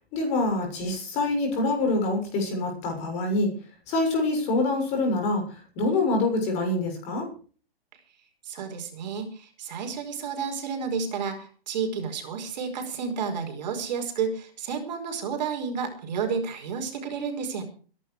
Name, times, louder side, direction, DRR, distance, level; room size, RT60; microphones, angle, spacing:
voice 1, 0.1-3.5 3.9-7.3, left 2 dB, 20° left, 3 dB, 6.7 m, -25 dB
voice 2, 8.4-17.6, right 6 dB, 45° right, 4 dB, 5.1 m, -31 dB
22.0 x 11.5 x 4.8 m, 0.41 s
hypercardioid pair, 160°, 30 cm